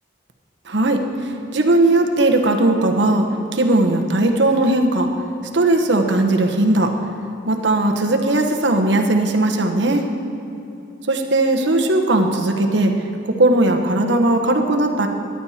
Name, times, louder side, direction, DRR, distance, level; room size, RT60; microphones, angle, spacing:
voice 1, 0.7-3.3 3.5-5.1 5.5-6.9 7.5-10.0 11.1-12.9 13.2-15.1, right 2 dB, 65° right, 3 dB, 1.0 m, -18 dB
14.0 x 10.5 x 4.3 m, 2.8 s
head